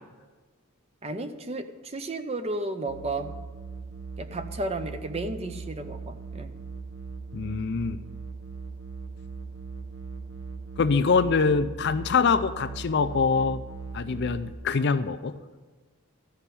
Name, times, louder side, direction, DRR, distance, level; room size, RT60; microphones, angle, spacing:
voice 1, 1.0-3.3 4.2-6.5, right 2 dB, 30° right, 8 dB, 0.6 m, -33 dB
sound 1, 2.9-14.5, right 4 dB, 65° right, 0.9 m, -39 dB
voice 2, 7.3-8.0 10.8-13.6 13.9-15.3, left 5 dB, 50° left, 12 dB, 0.4 m, -24 dB
13.5 x 5.7 x 8.4 m, 1.3 s
head